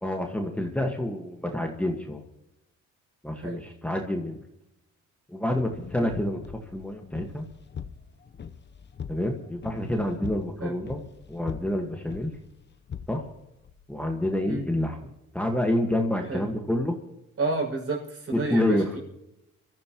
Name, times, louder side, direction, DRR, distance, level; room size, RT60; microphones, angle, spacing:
voice 1, 0.0-2.2 3.2-4.4 5.3-6.4 6.7-7.5 9.1-11.0 11.3-12.3 13.1-13.3 13.9-15.1 15.3-16.9 18.5-18.9, left 1 dB, 5° left, 2 dB, 1.7 m, -28 dB
sound 1, 5.5-14.2, left 7 dB, 35° left, 0.9 m, -42 dB
voice 2, 17.4-19.0, right 3 dB, 50° right, -1 dB, 6.6 m, -30 dB
24.5 x 14.0 x 3.1 m, 0.86 s
cardioid pair, 90°, 30 cm